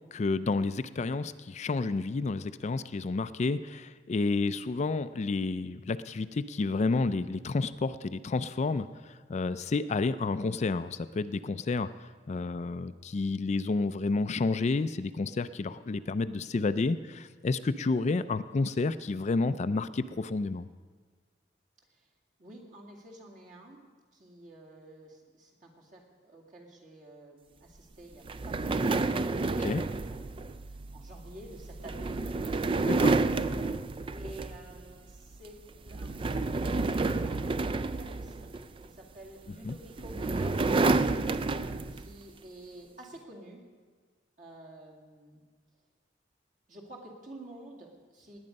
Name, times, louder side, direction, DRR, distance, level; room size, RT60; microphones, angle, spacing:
voice 1, 0.1-20.7 29.6-29.8 32.9-33.2 39.6-39.8, left 3 dB, 40° left, 12 dB, 0.4 m, -30 dB
voice 2, 22.4-30.6 30.9-32.2 34.1-38.5 38.8-40.9 41.9-43.6 44.4-45.4 46.7-48.4, right 1 dB, 50° right, -1 dB, 2.3 m, -50 dB
sound 1, 28.3-34.8 35.2-35.5 35.9-38.9 39.7-42.1, right 3 dB, 30° right, 0.4 m, -30 dB
18.5 x 9.7 x 5.3 m, 1.5 s
head